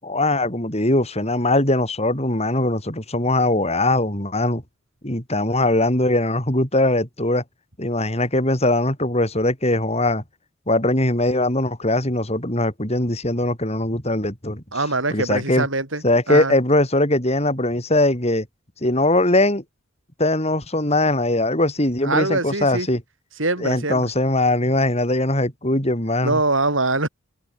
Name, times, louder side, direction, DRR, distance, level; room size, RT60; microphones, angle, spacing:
voice 1, 0.0-4.6 5.0-7.4 7.8-10.2 10.7-14.6 15.1-15.7 16.0-18.5 18.8-19.6 20.2-23.0 23.6-26.4, left 1 dB, 30° left, 6.4 m, -21 dB
voice 2, 14.7-16.5 22.0-22.9 23.4-24.1 26.2-27.1, right 2 dB, 70° right, 7.8 m, -23 dB
head